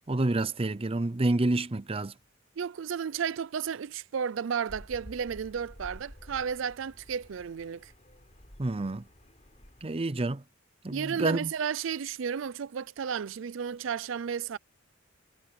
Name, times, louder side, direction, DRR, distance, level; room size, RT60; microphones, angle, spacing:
voice 1, 0.1-2.1 8.6-9.0 9.8-10.4 10.8-11.5, right 2 dB, 30° right, 0.6 m, -28 dB
voice 2, 2.6-7.9 10.9-14.6, right 7 dB, 75° right, 0.4 m, -33 dB
sound 1, 4.7-9.9, equal, 35° left, 4.0 m, -51 dB
head